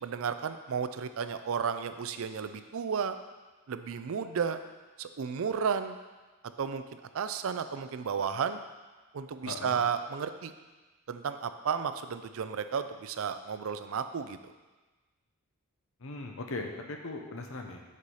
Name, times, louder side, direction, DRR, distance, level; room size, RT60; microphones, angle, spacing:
voice 1, 0.0-3.2 3.7-4.6 5.0-6.0 6.6-8.6 9.1-10.5 11.1-14.5, right 6 dB, 65° right, 10 dB, 0.4 m, -33 dB
voice 2, 9.4-9.8 16.0-17.8, left 2 dB, 65° left, 3 dB, 0.9 m, -39 dB
6.6 x 4.8 x 5.5 m, 1.2 s
head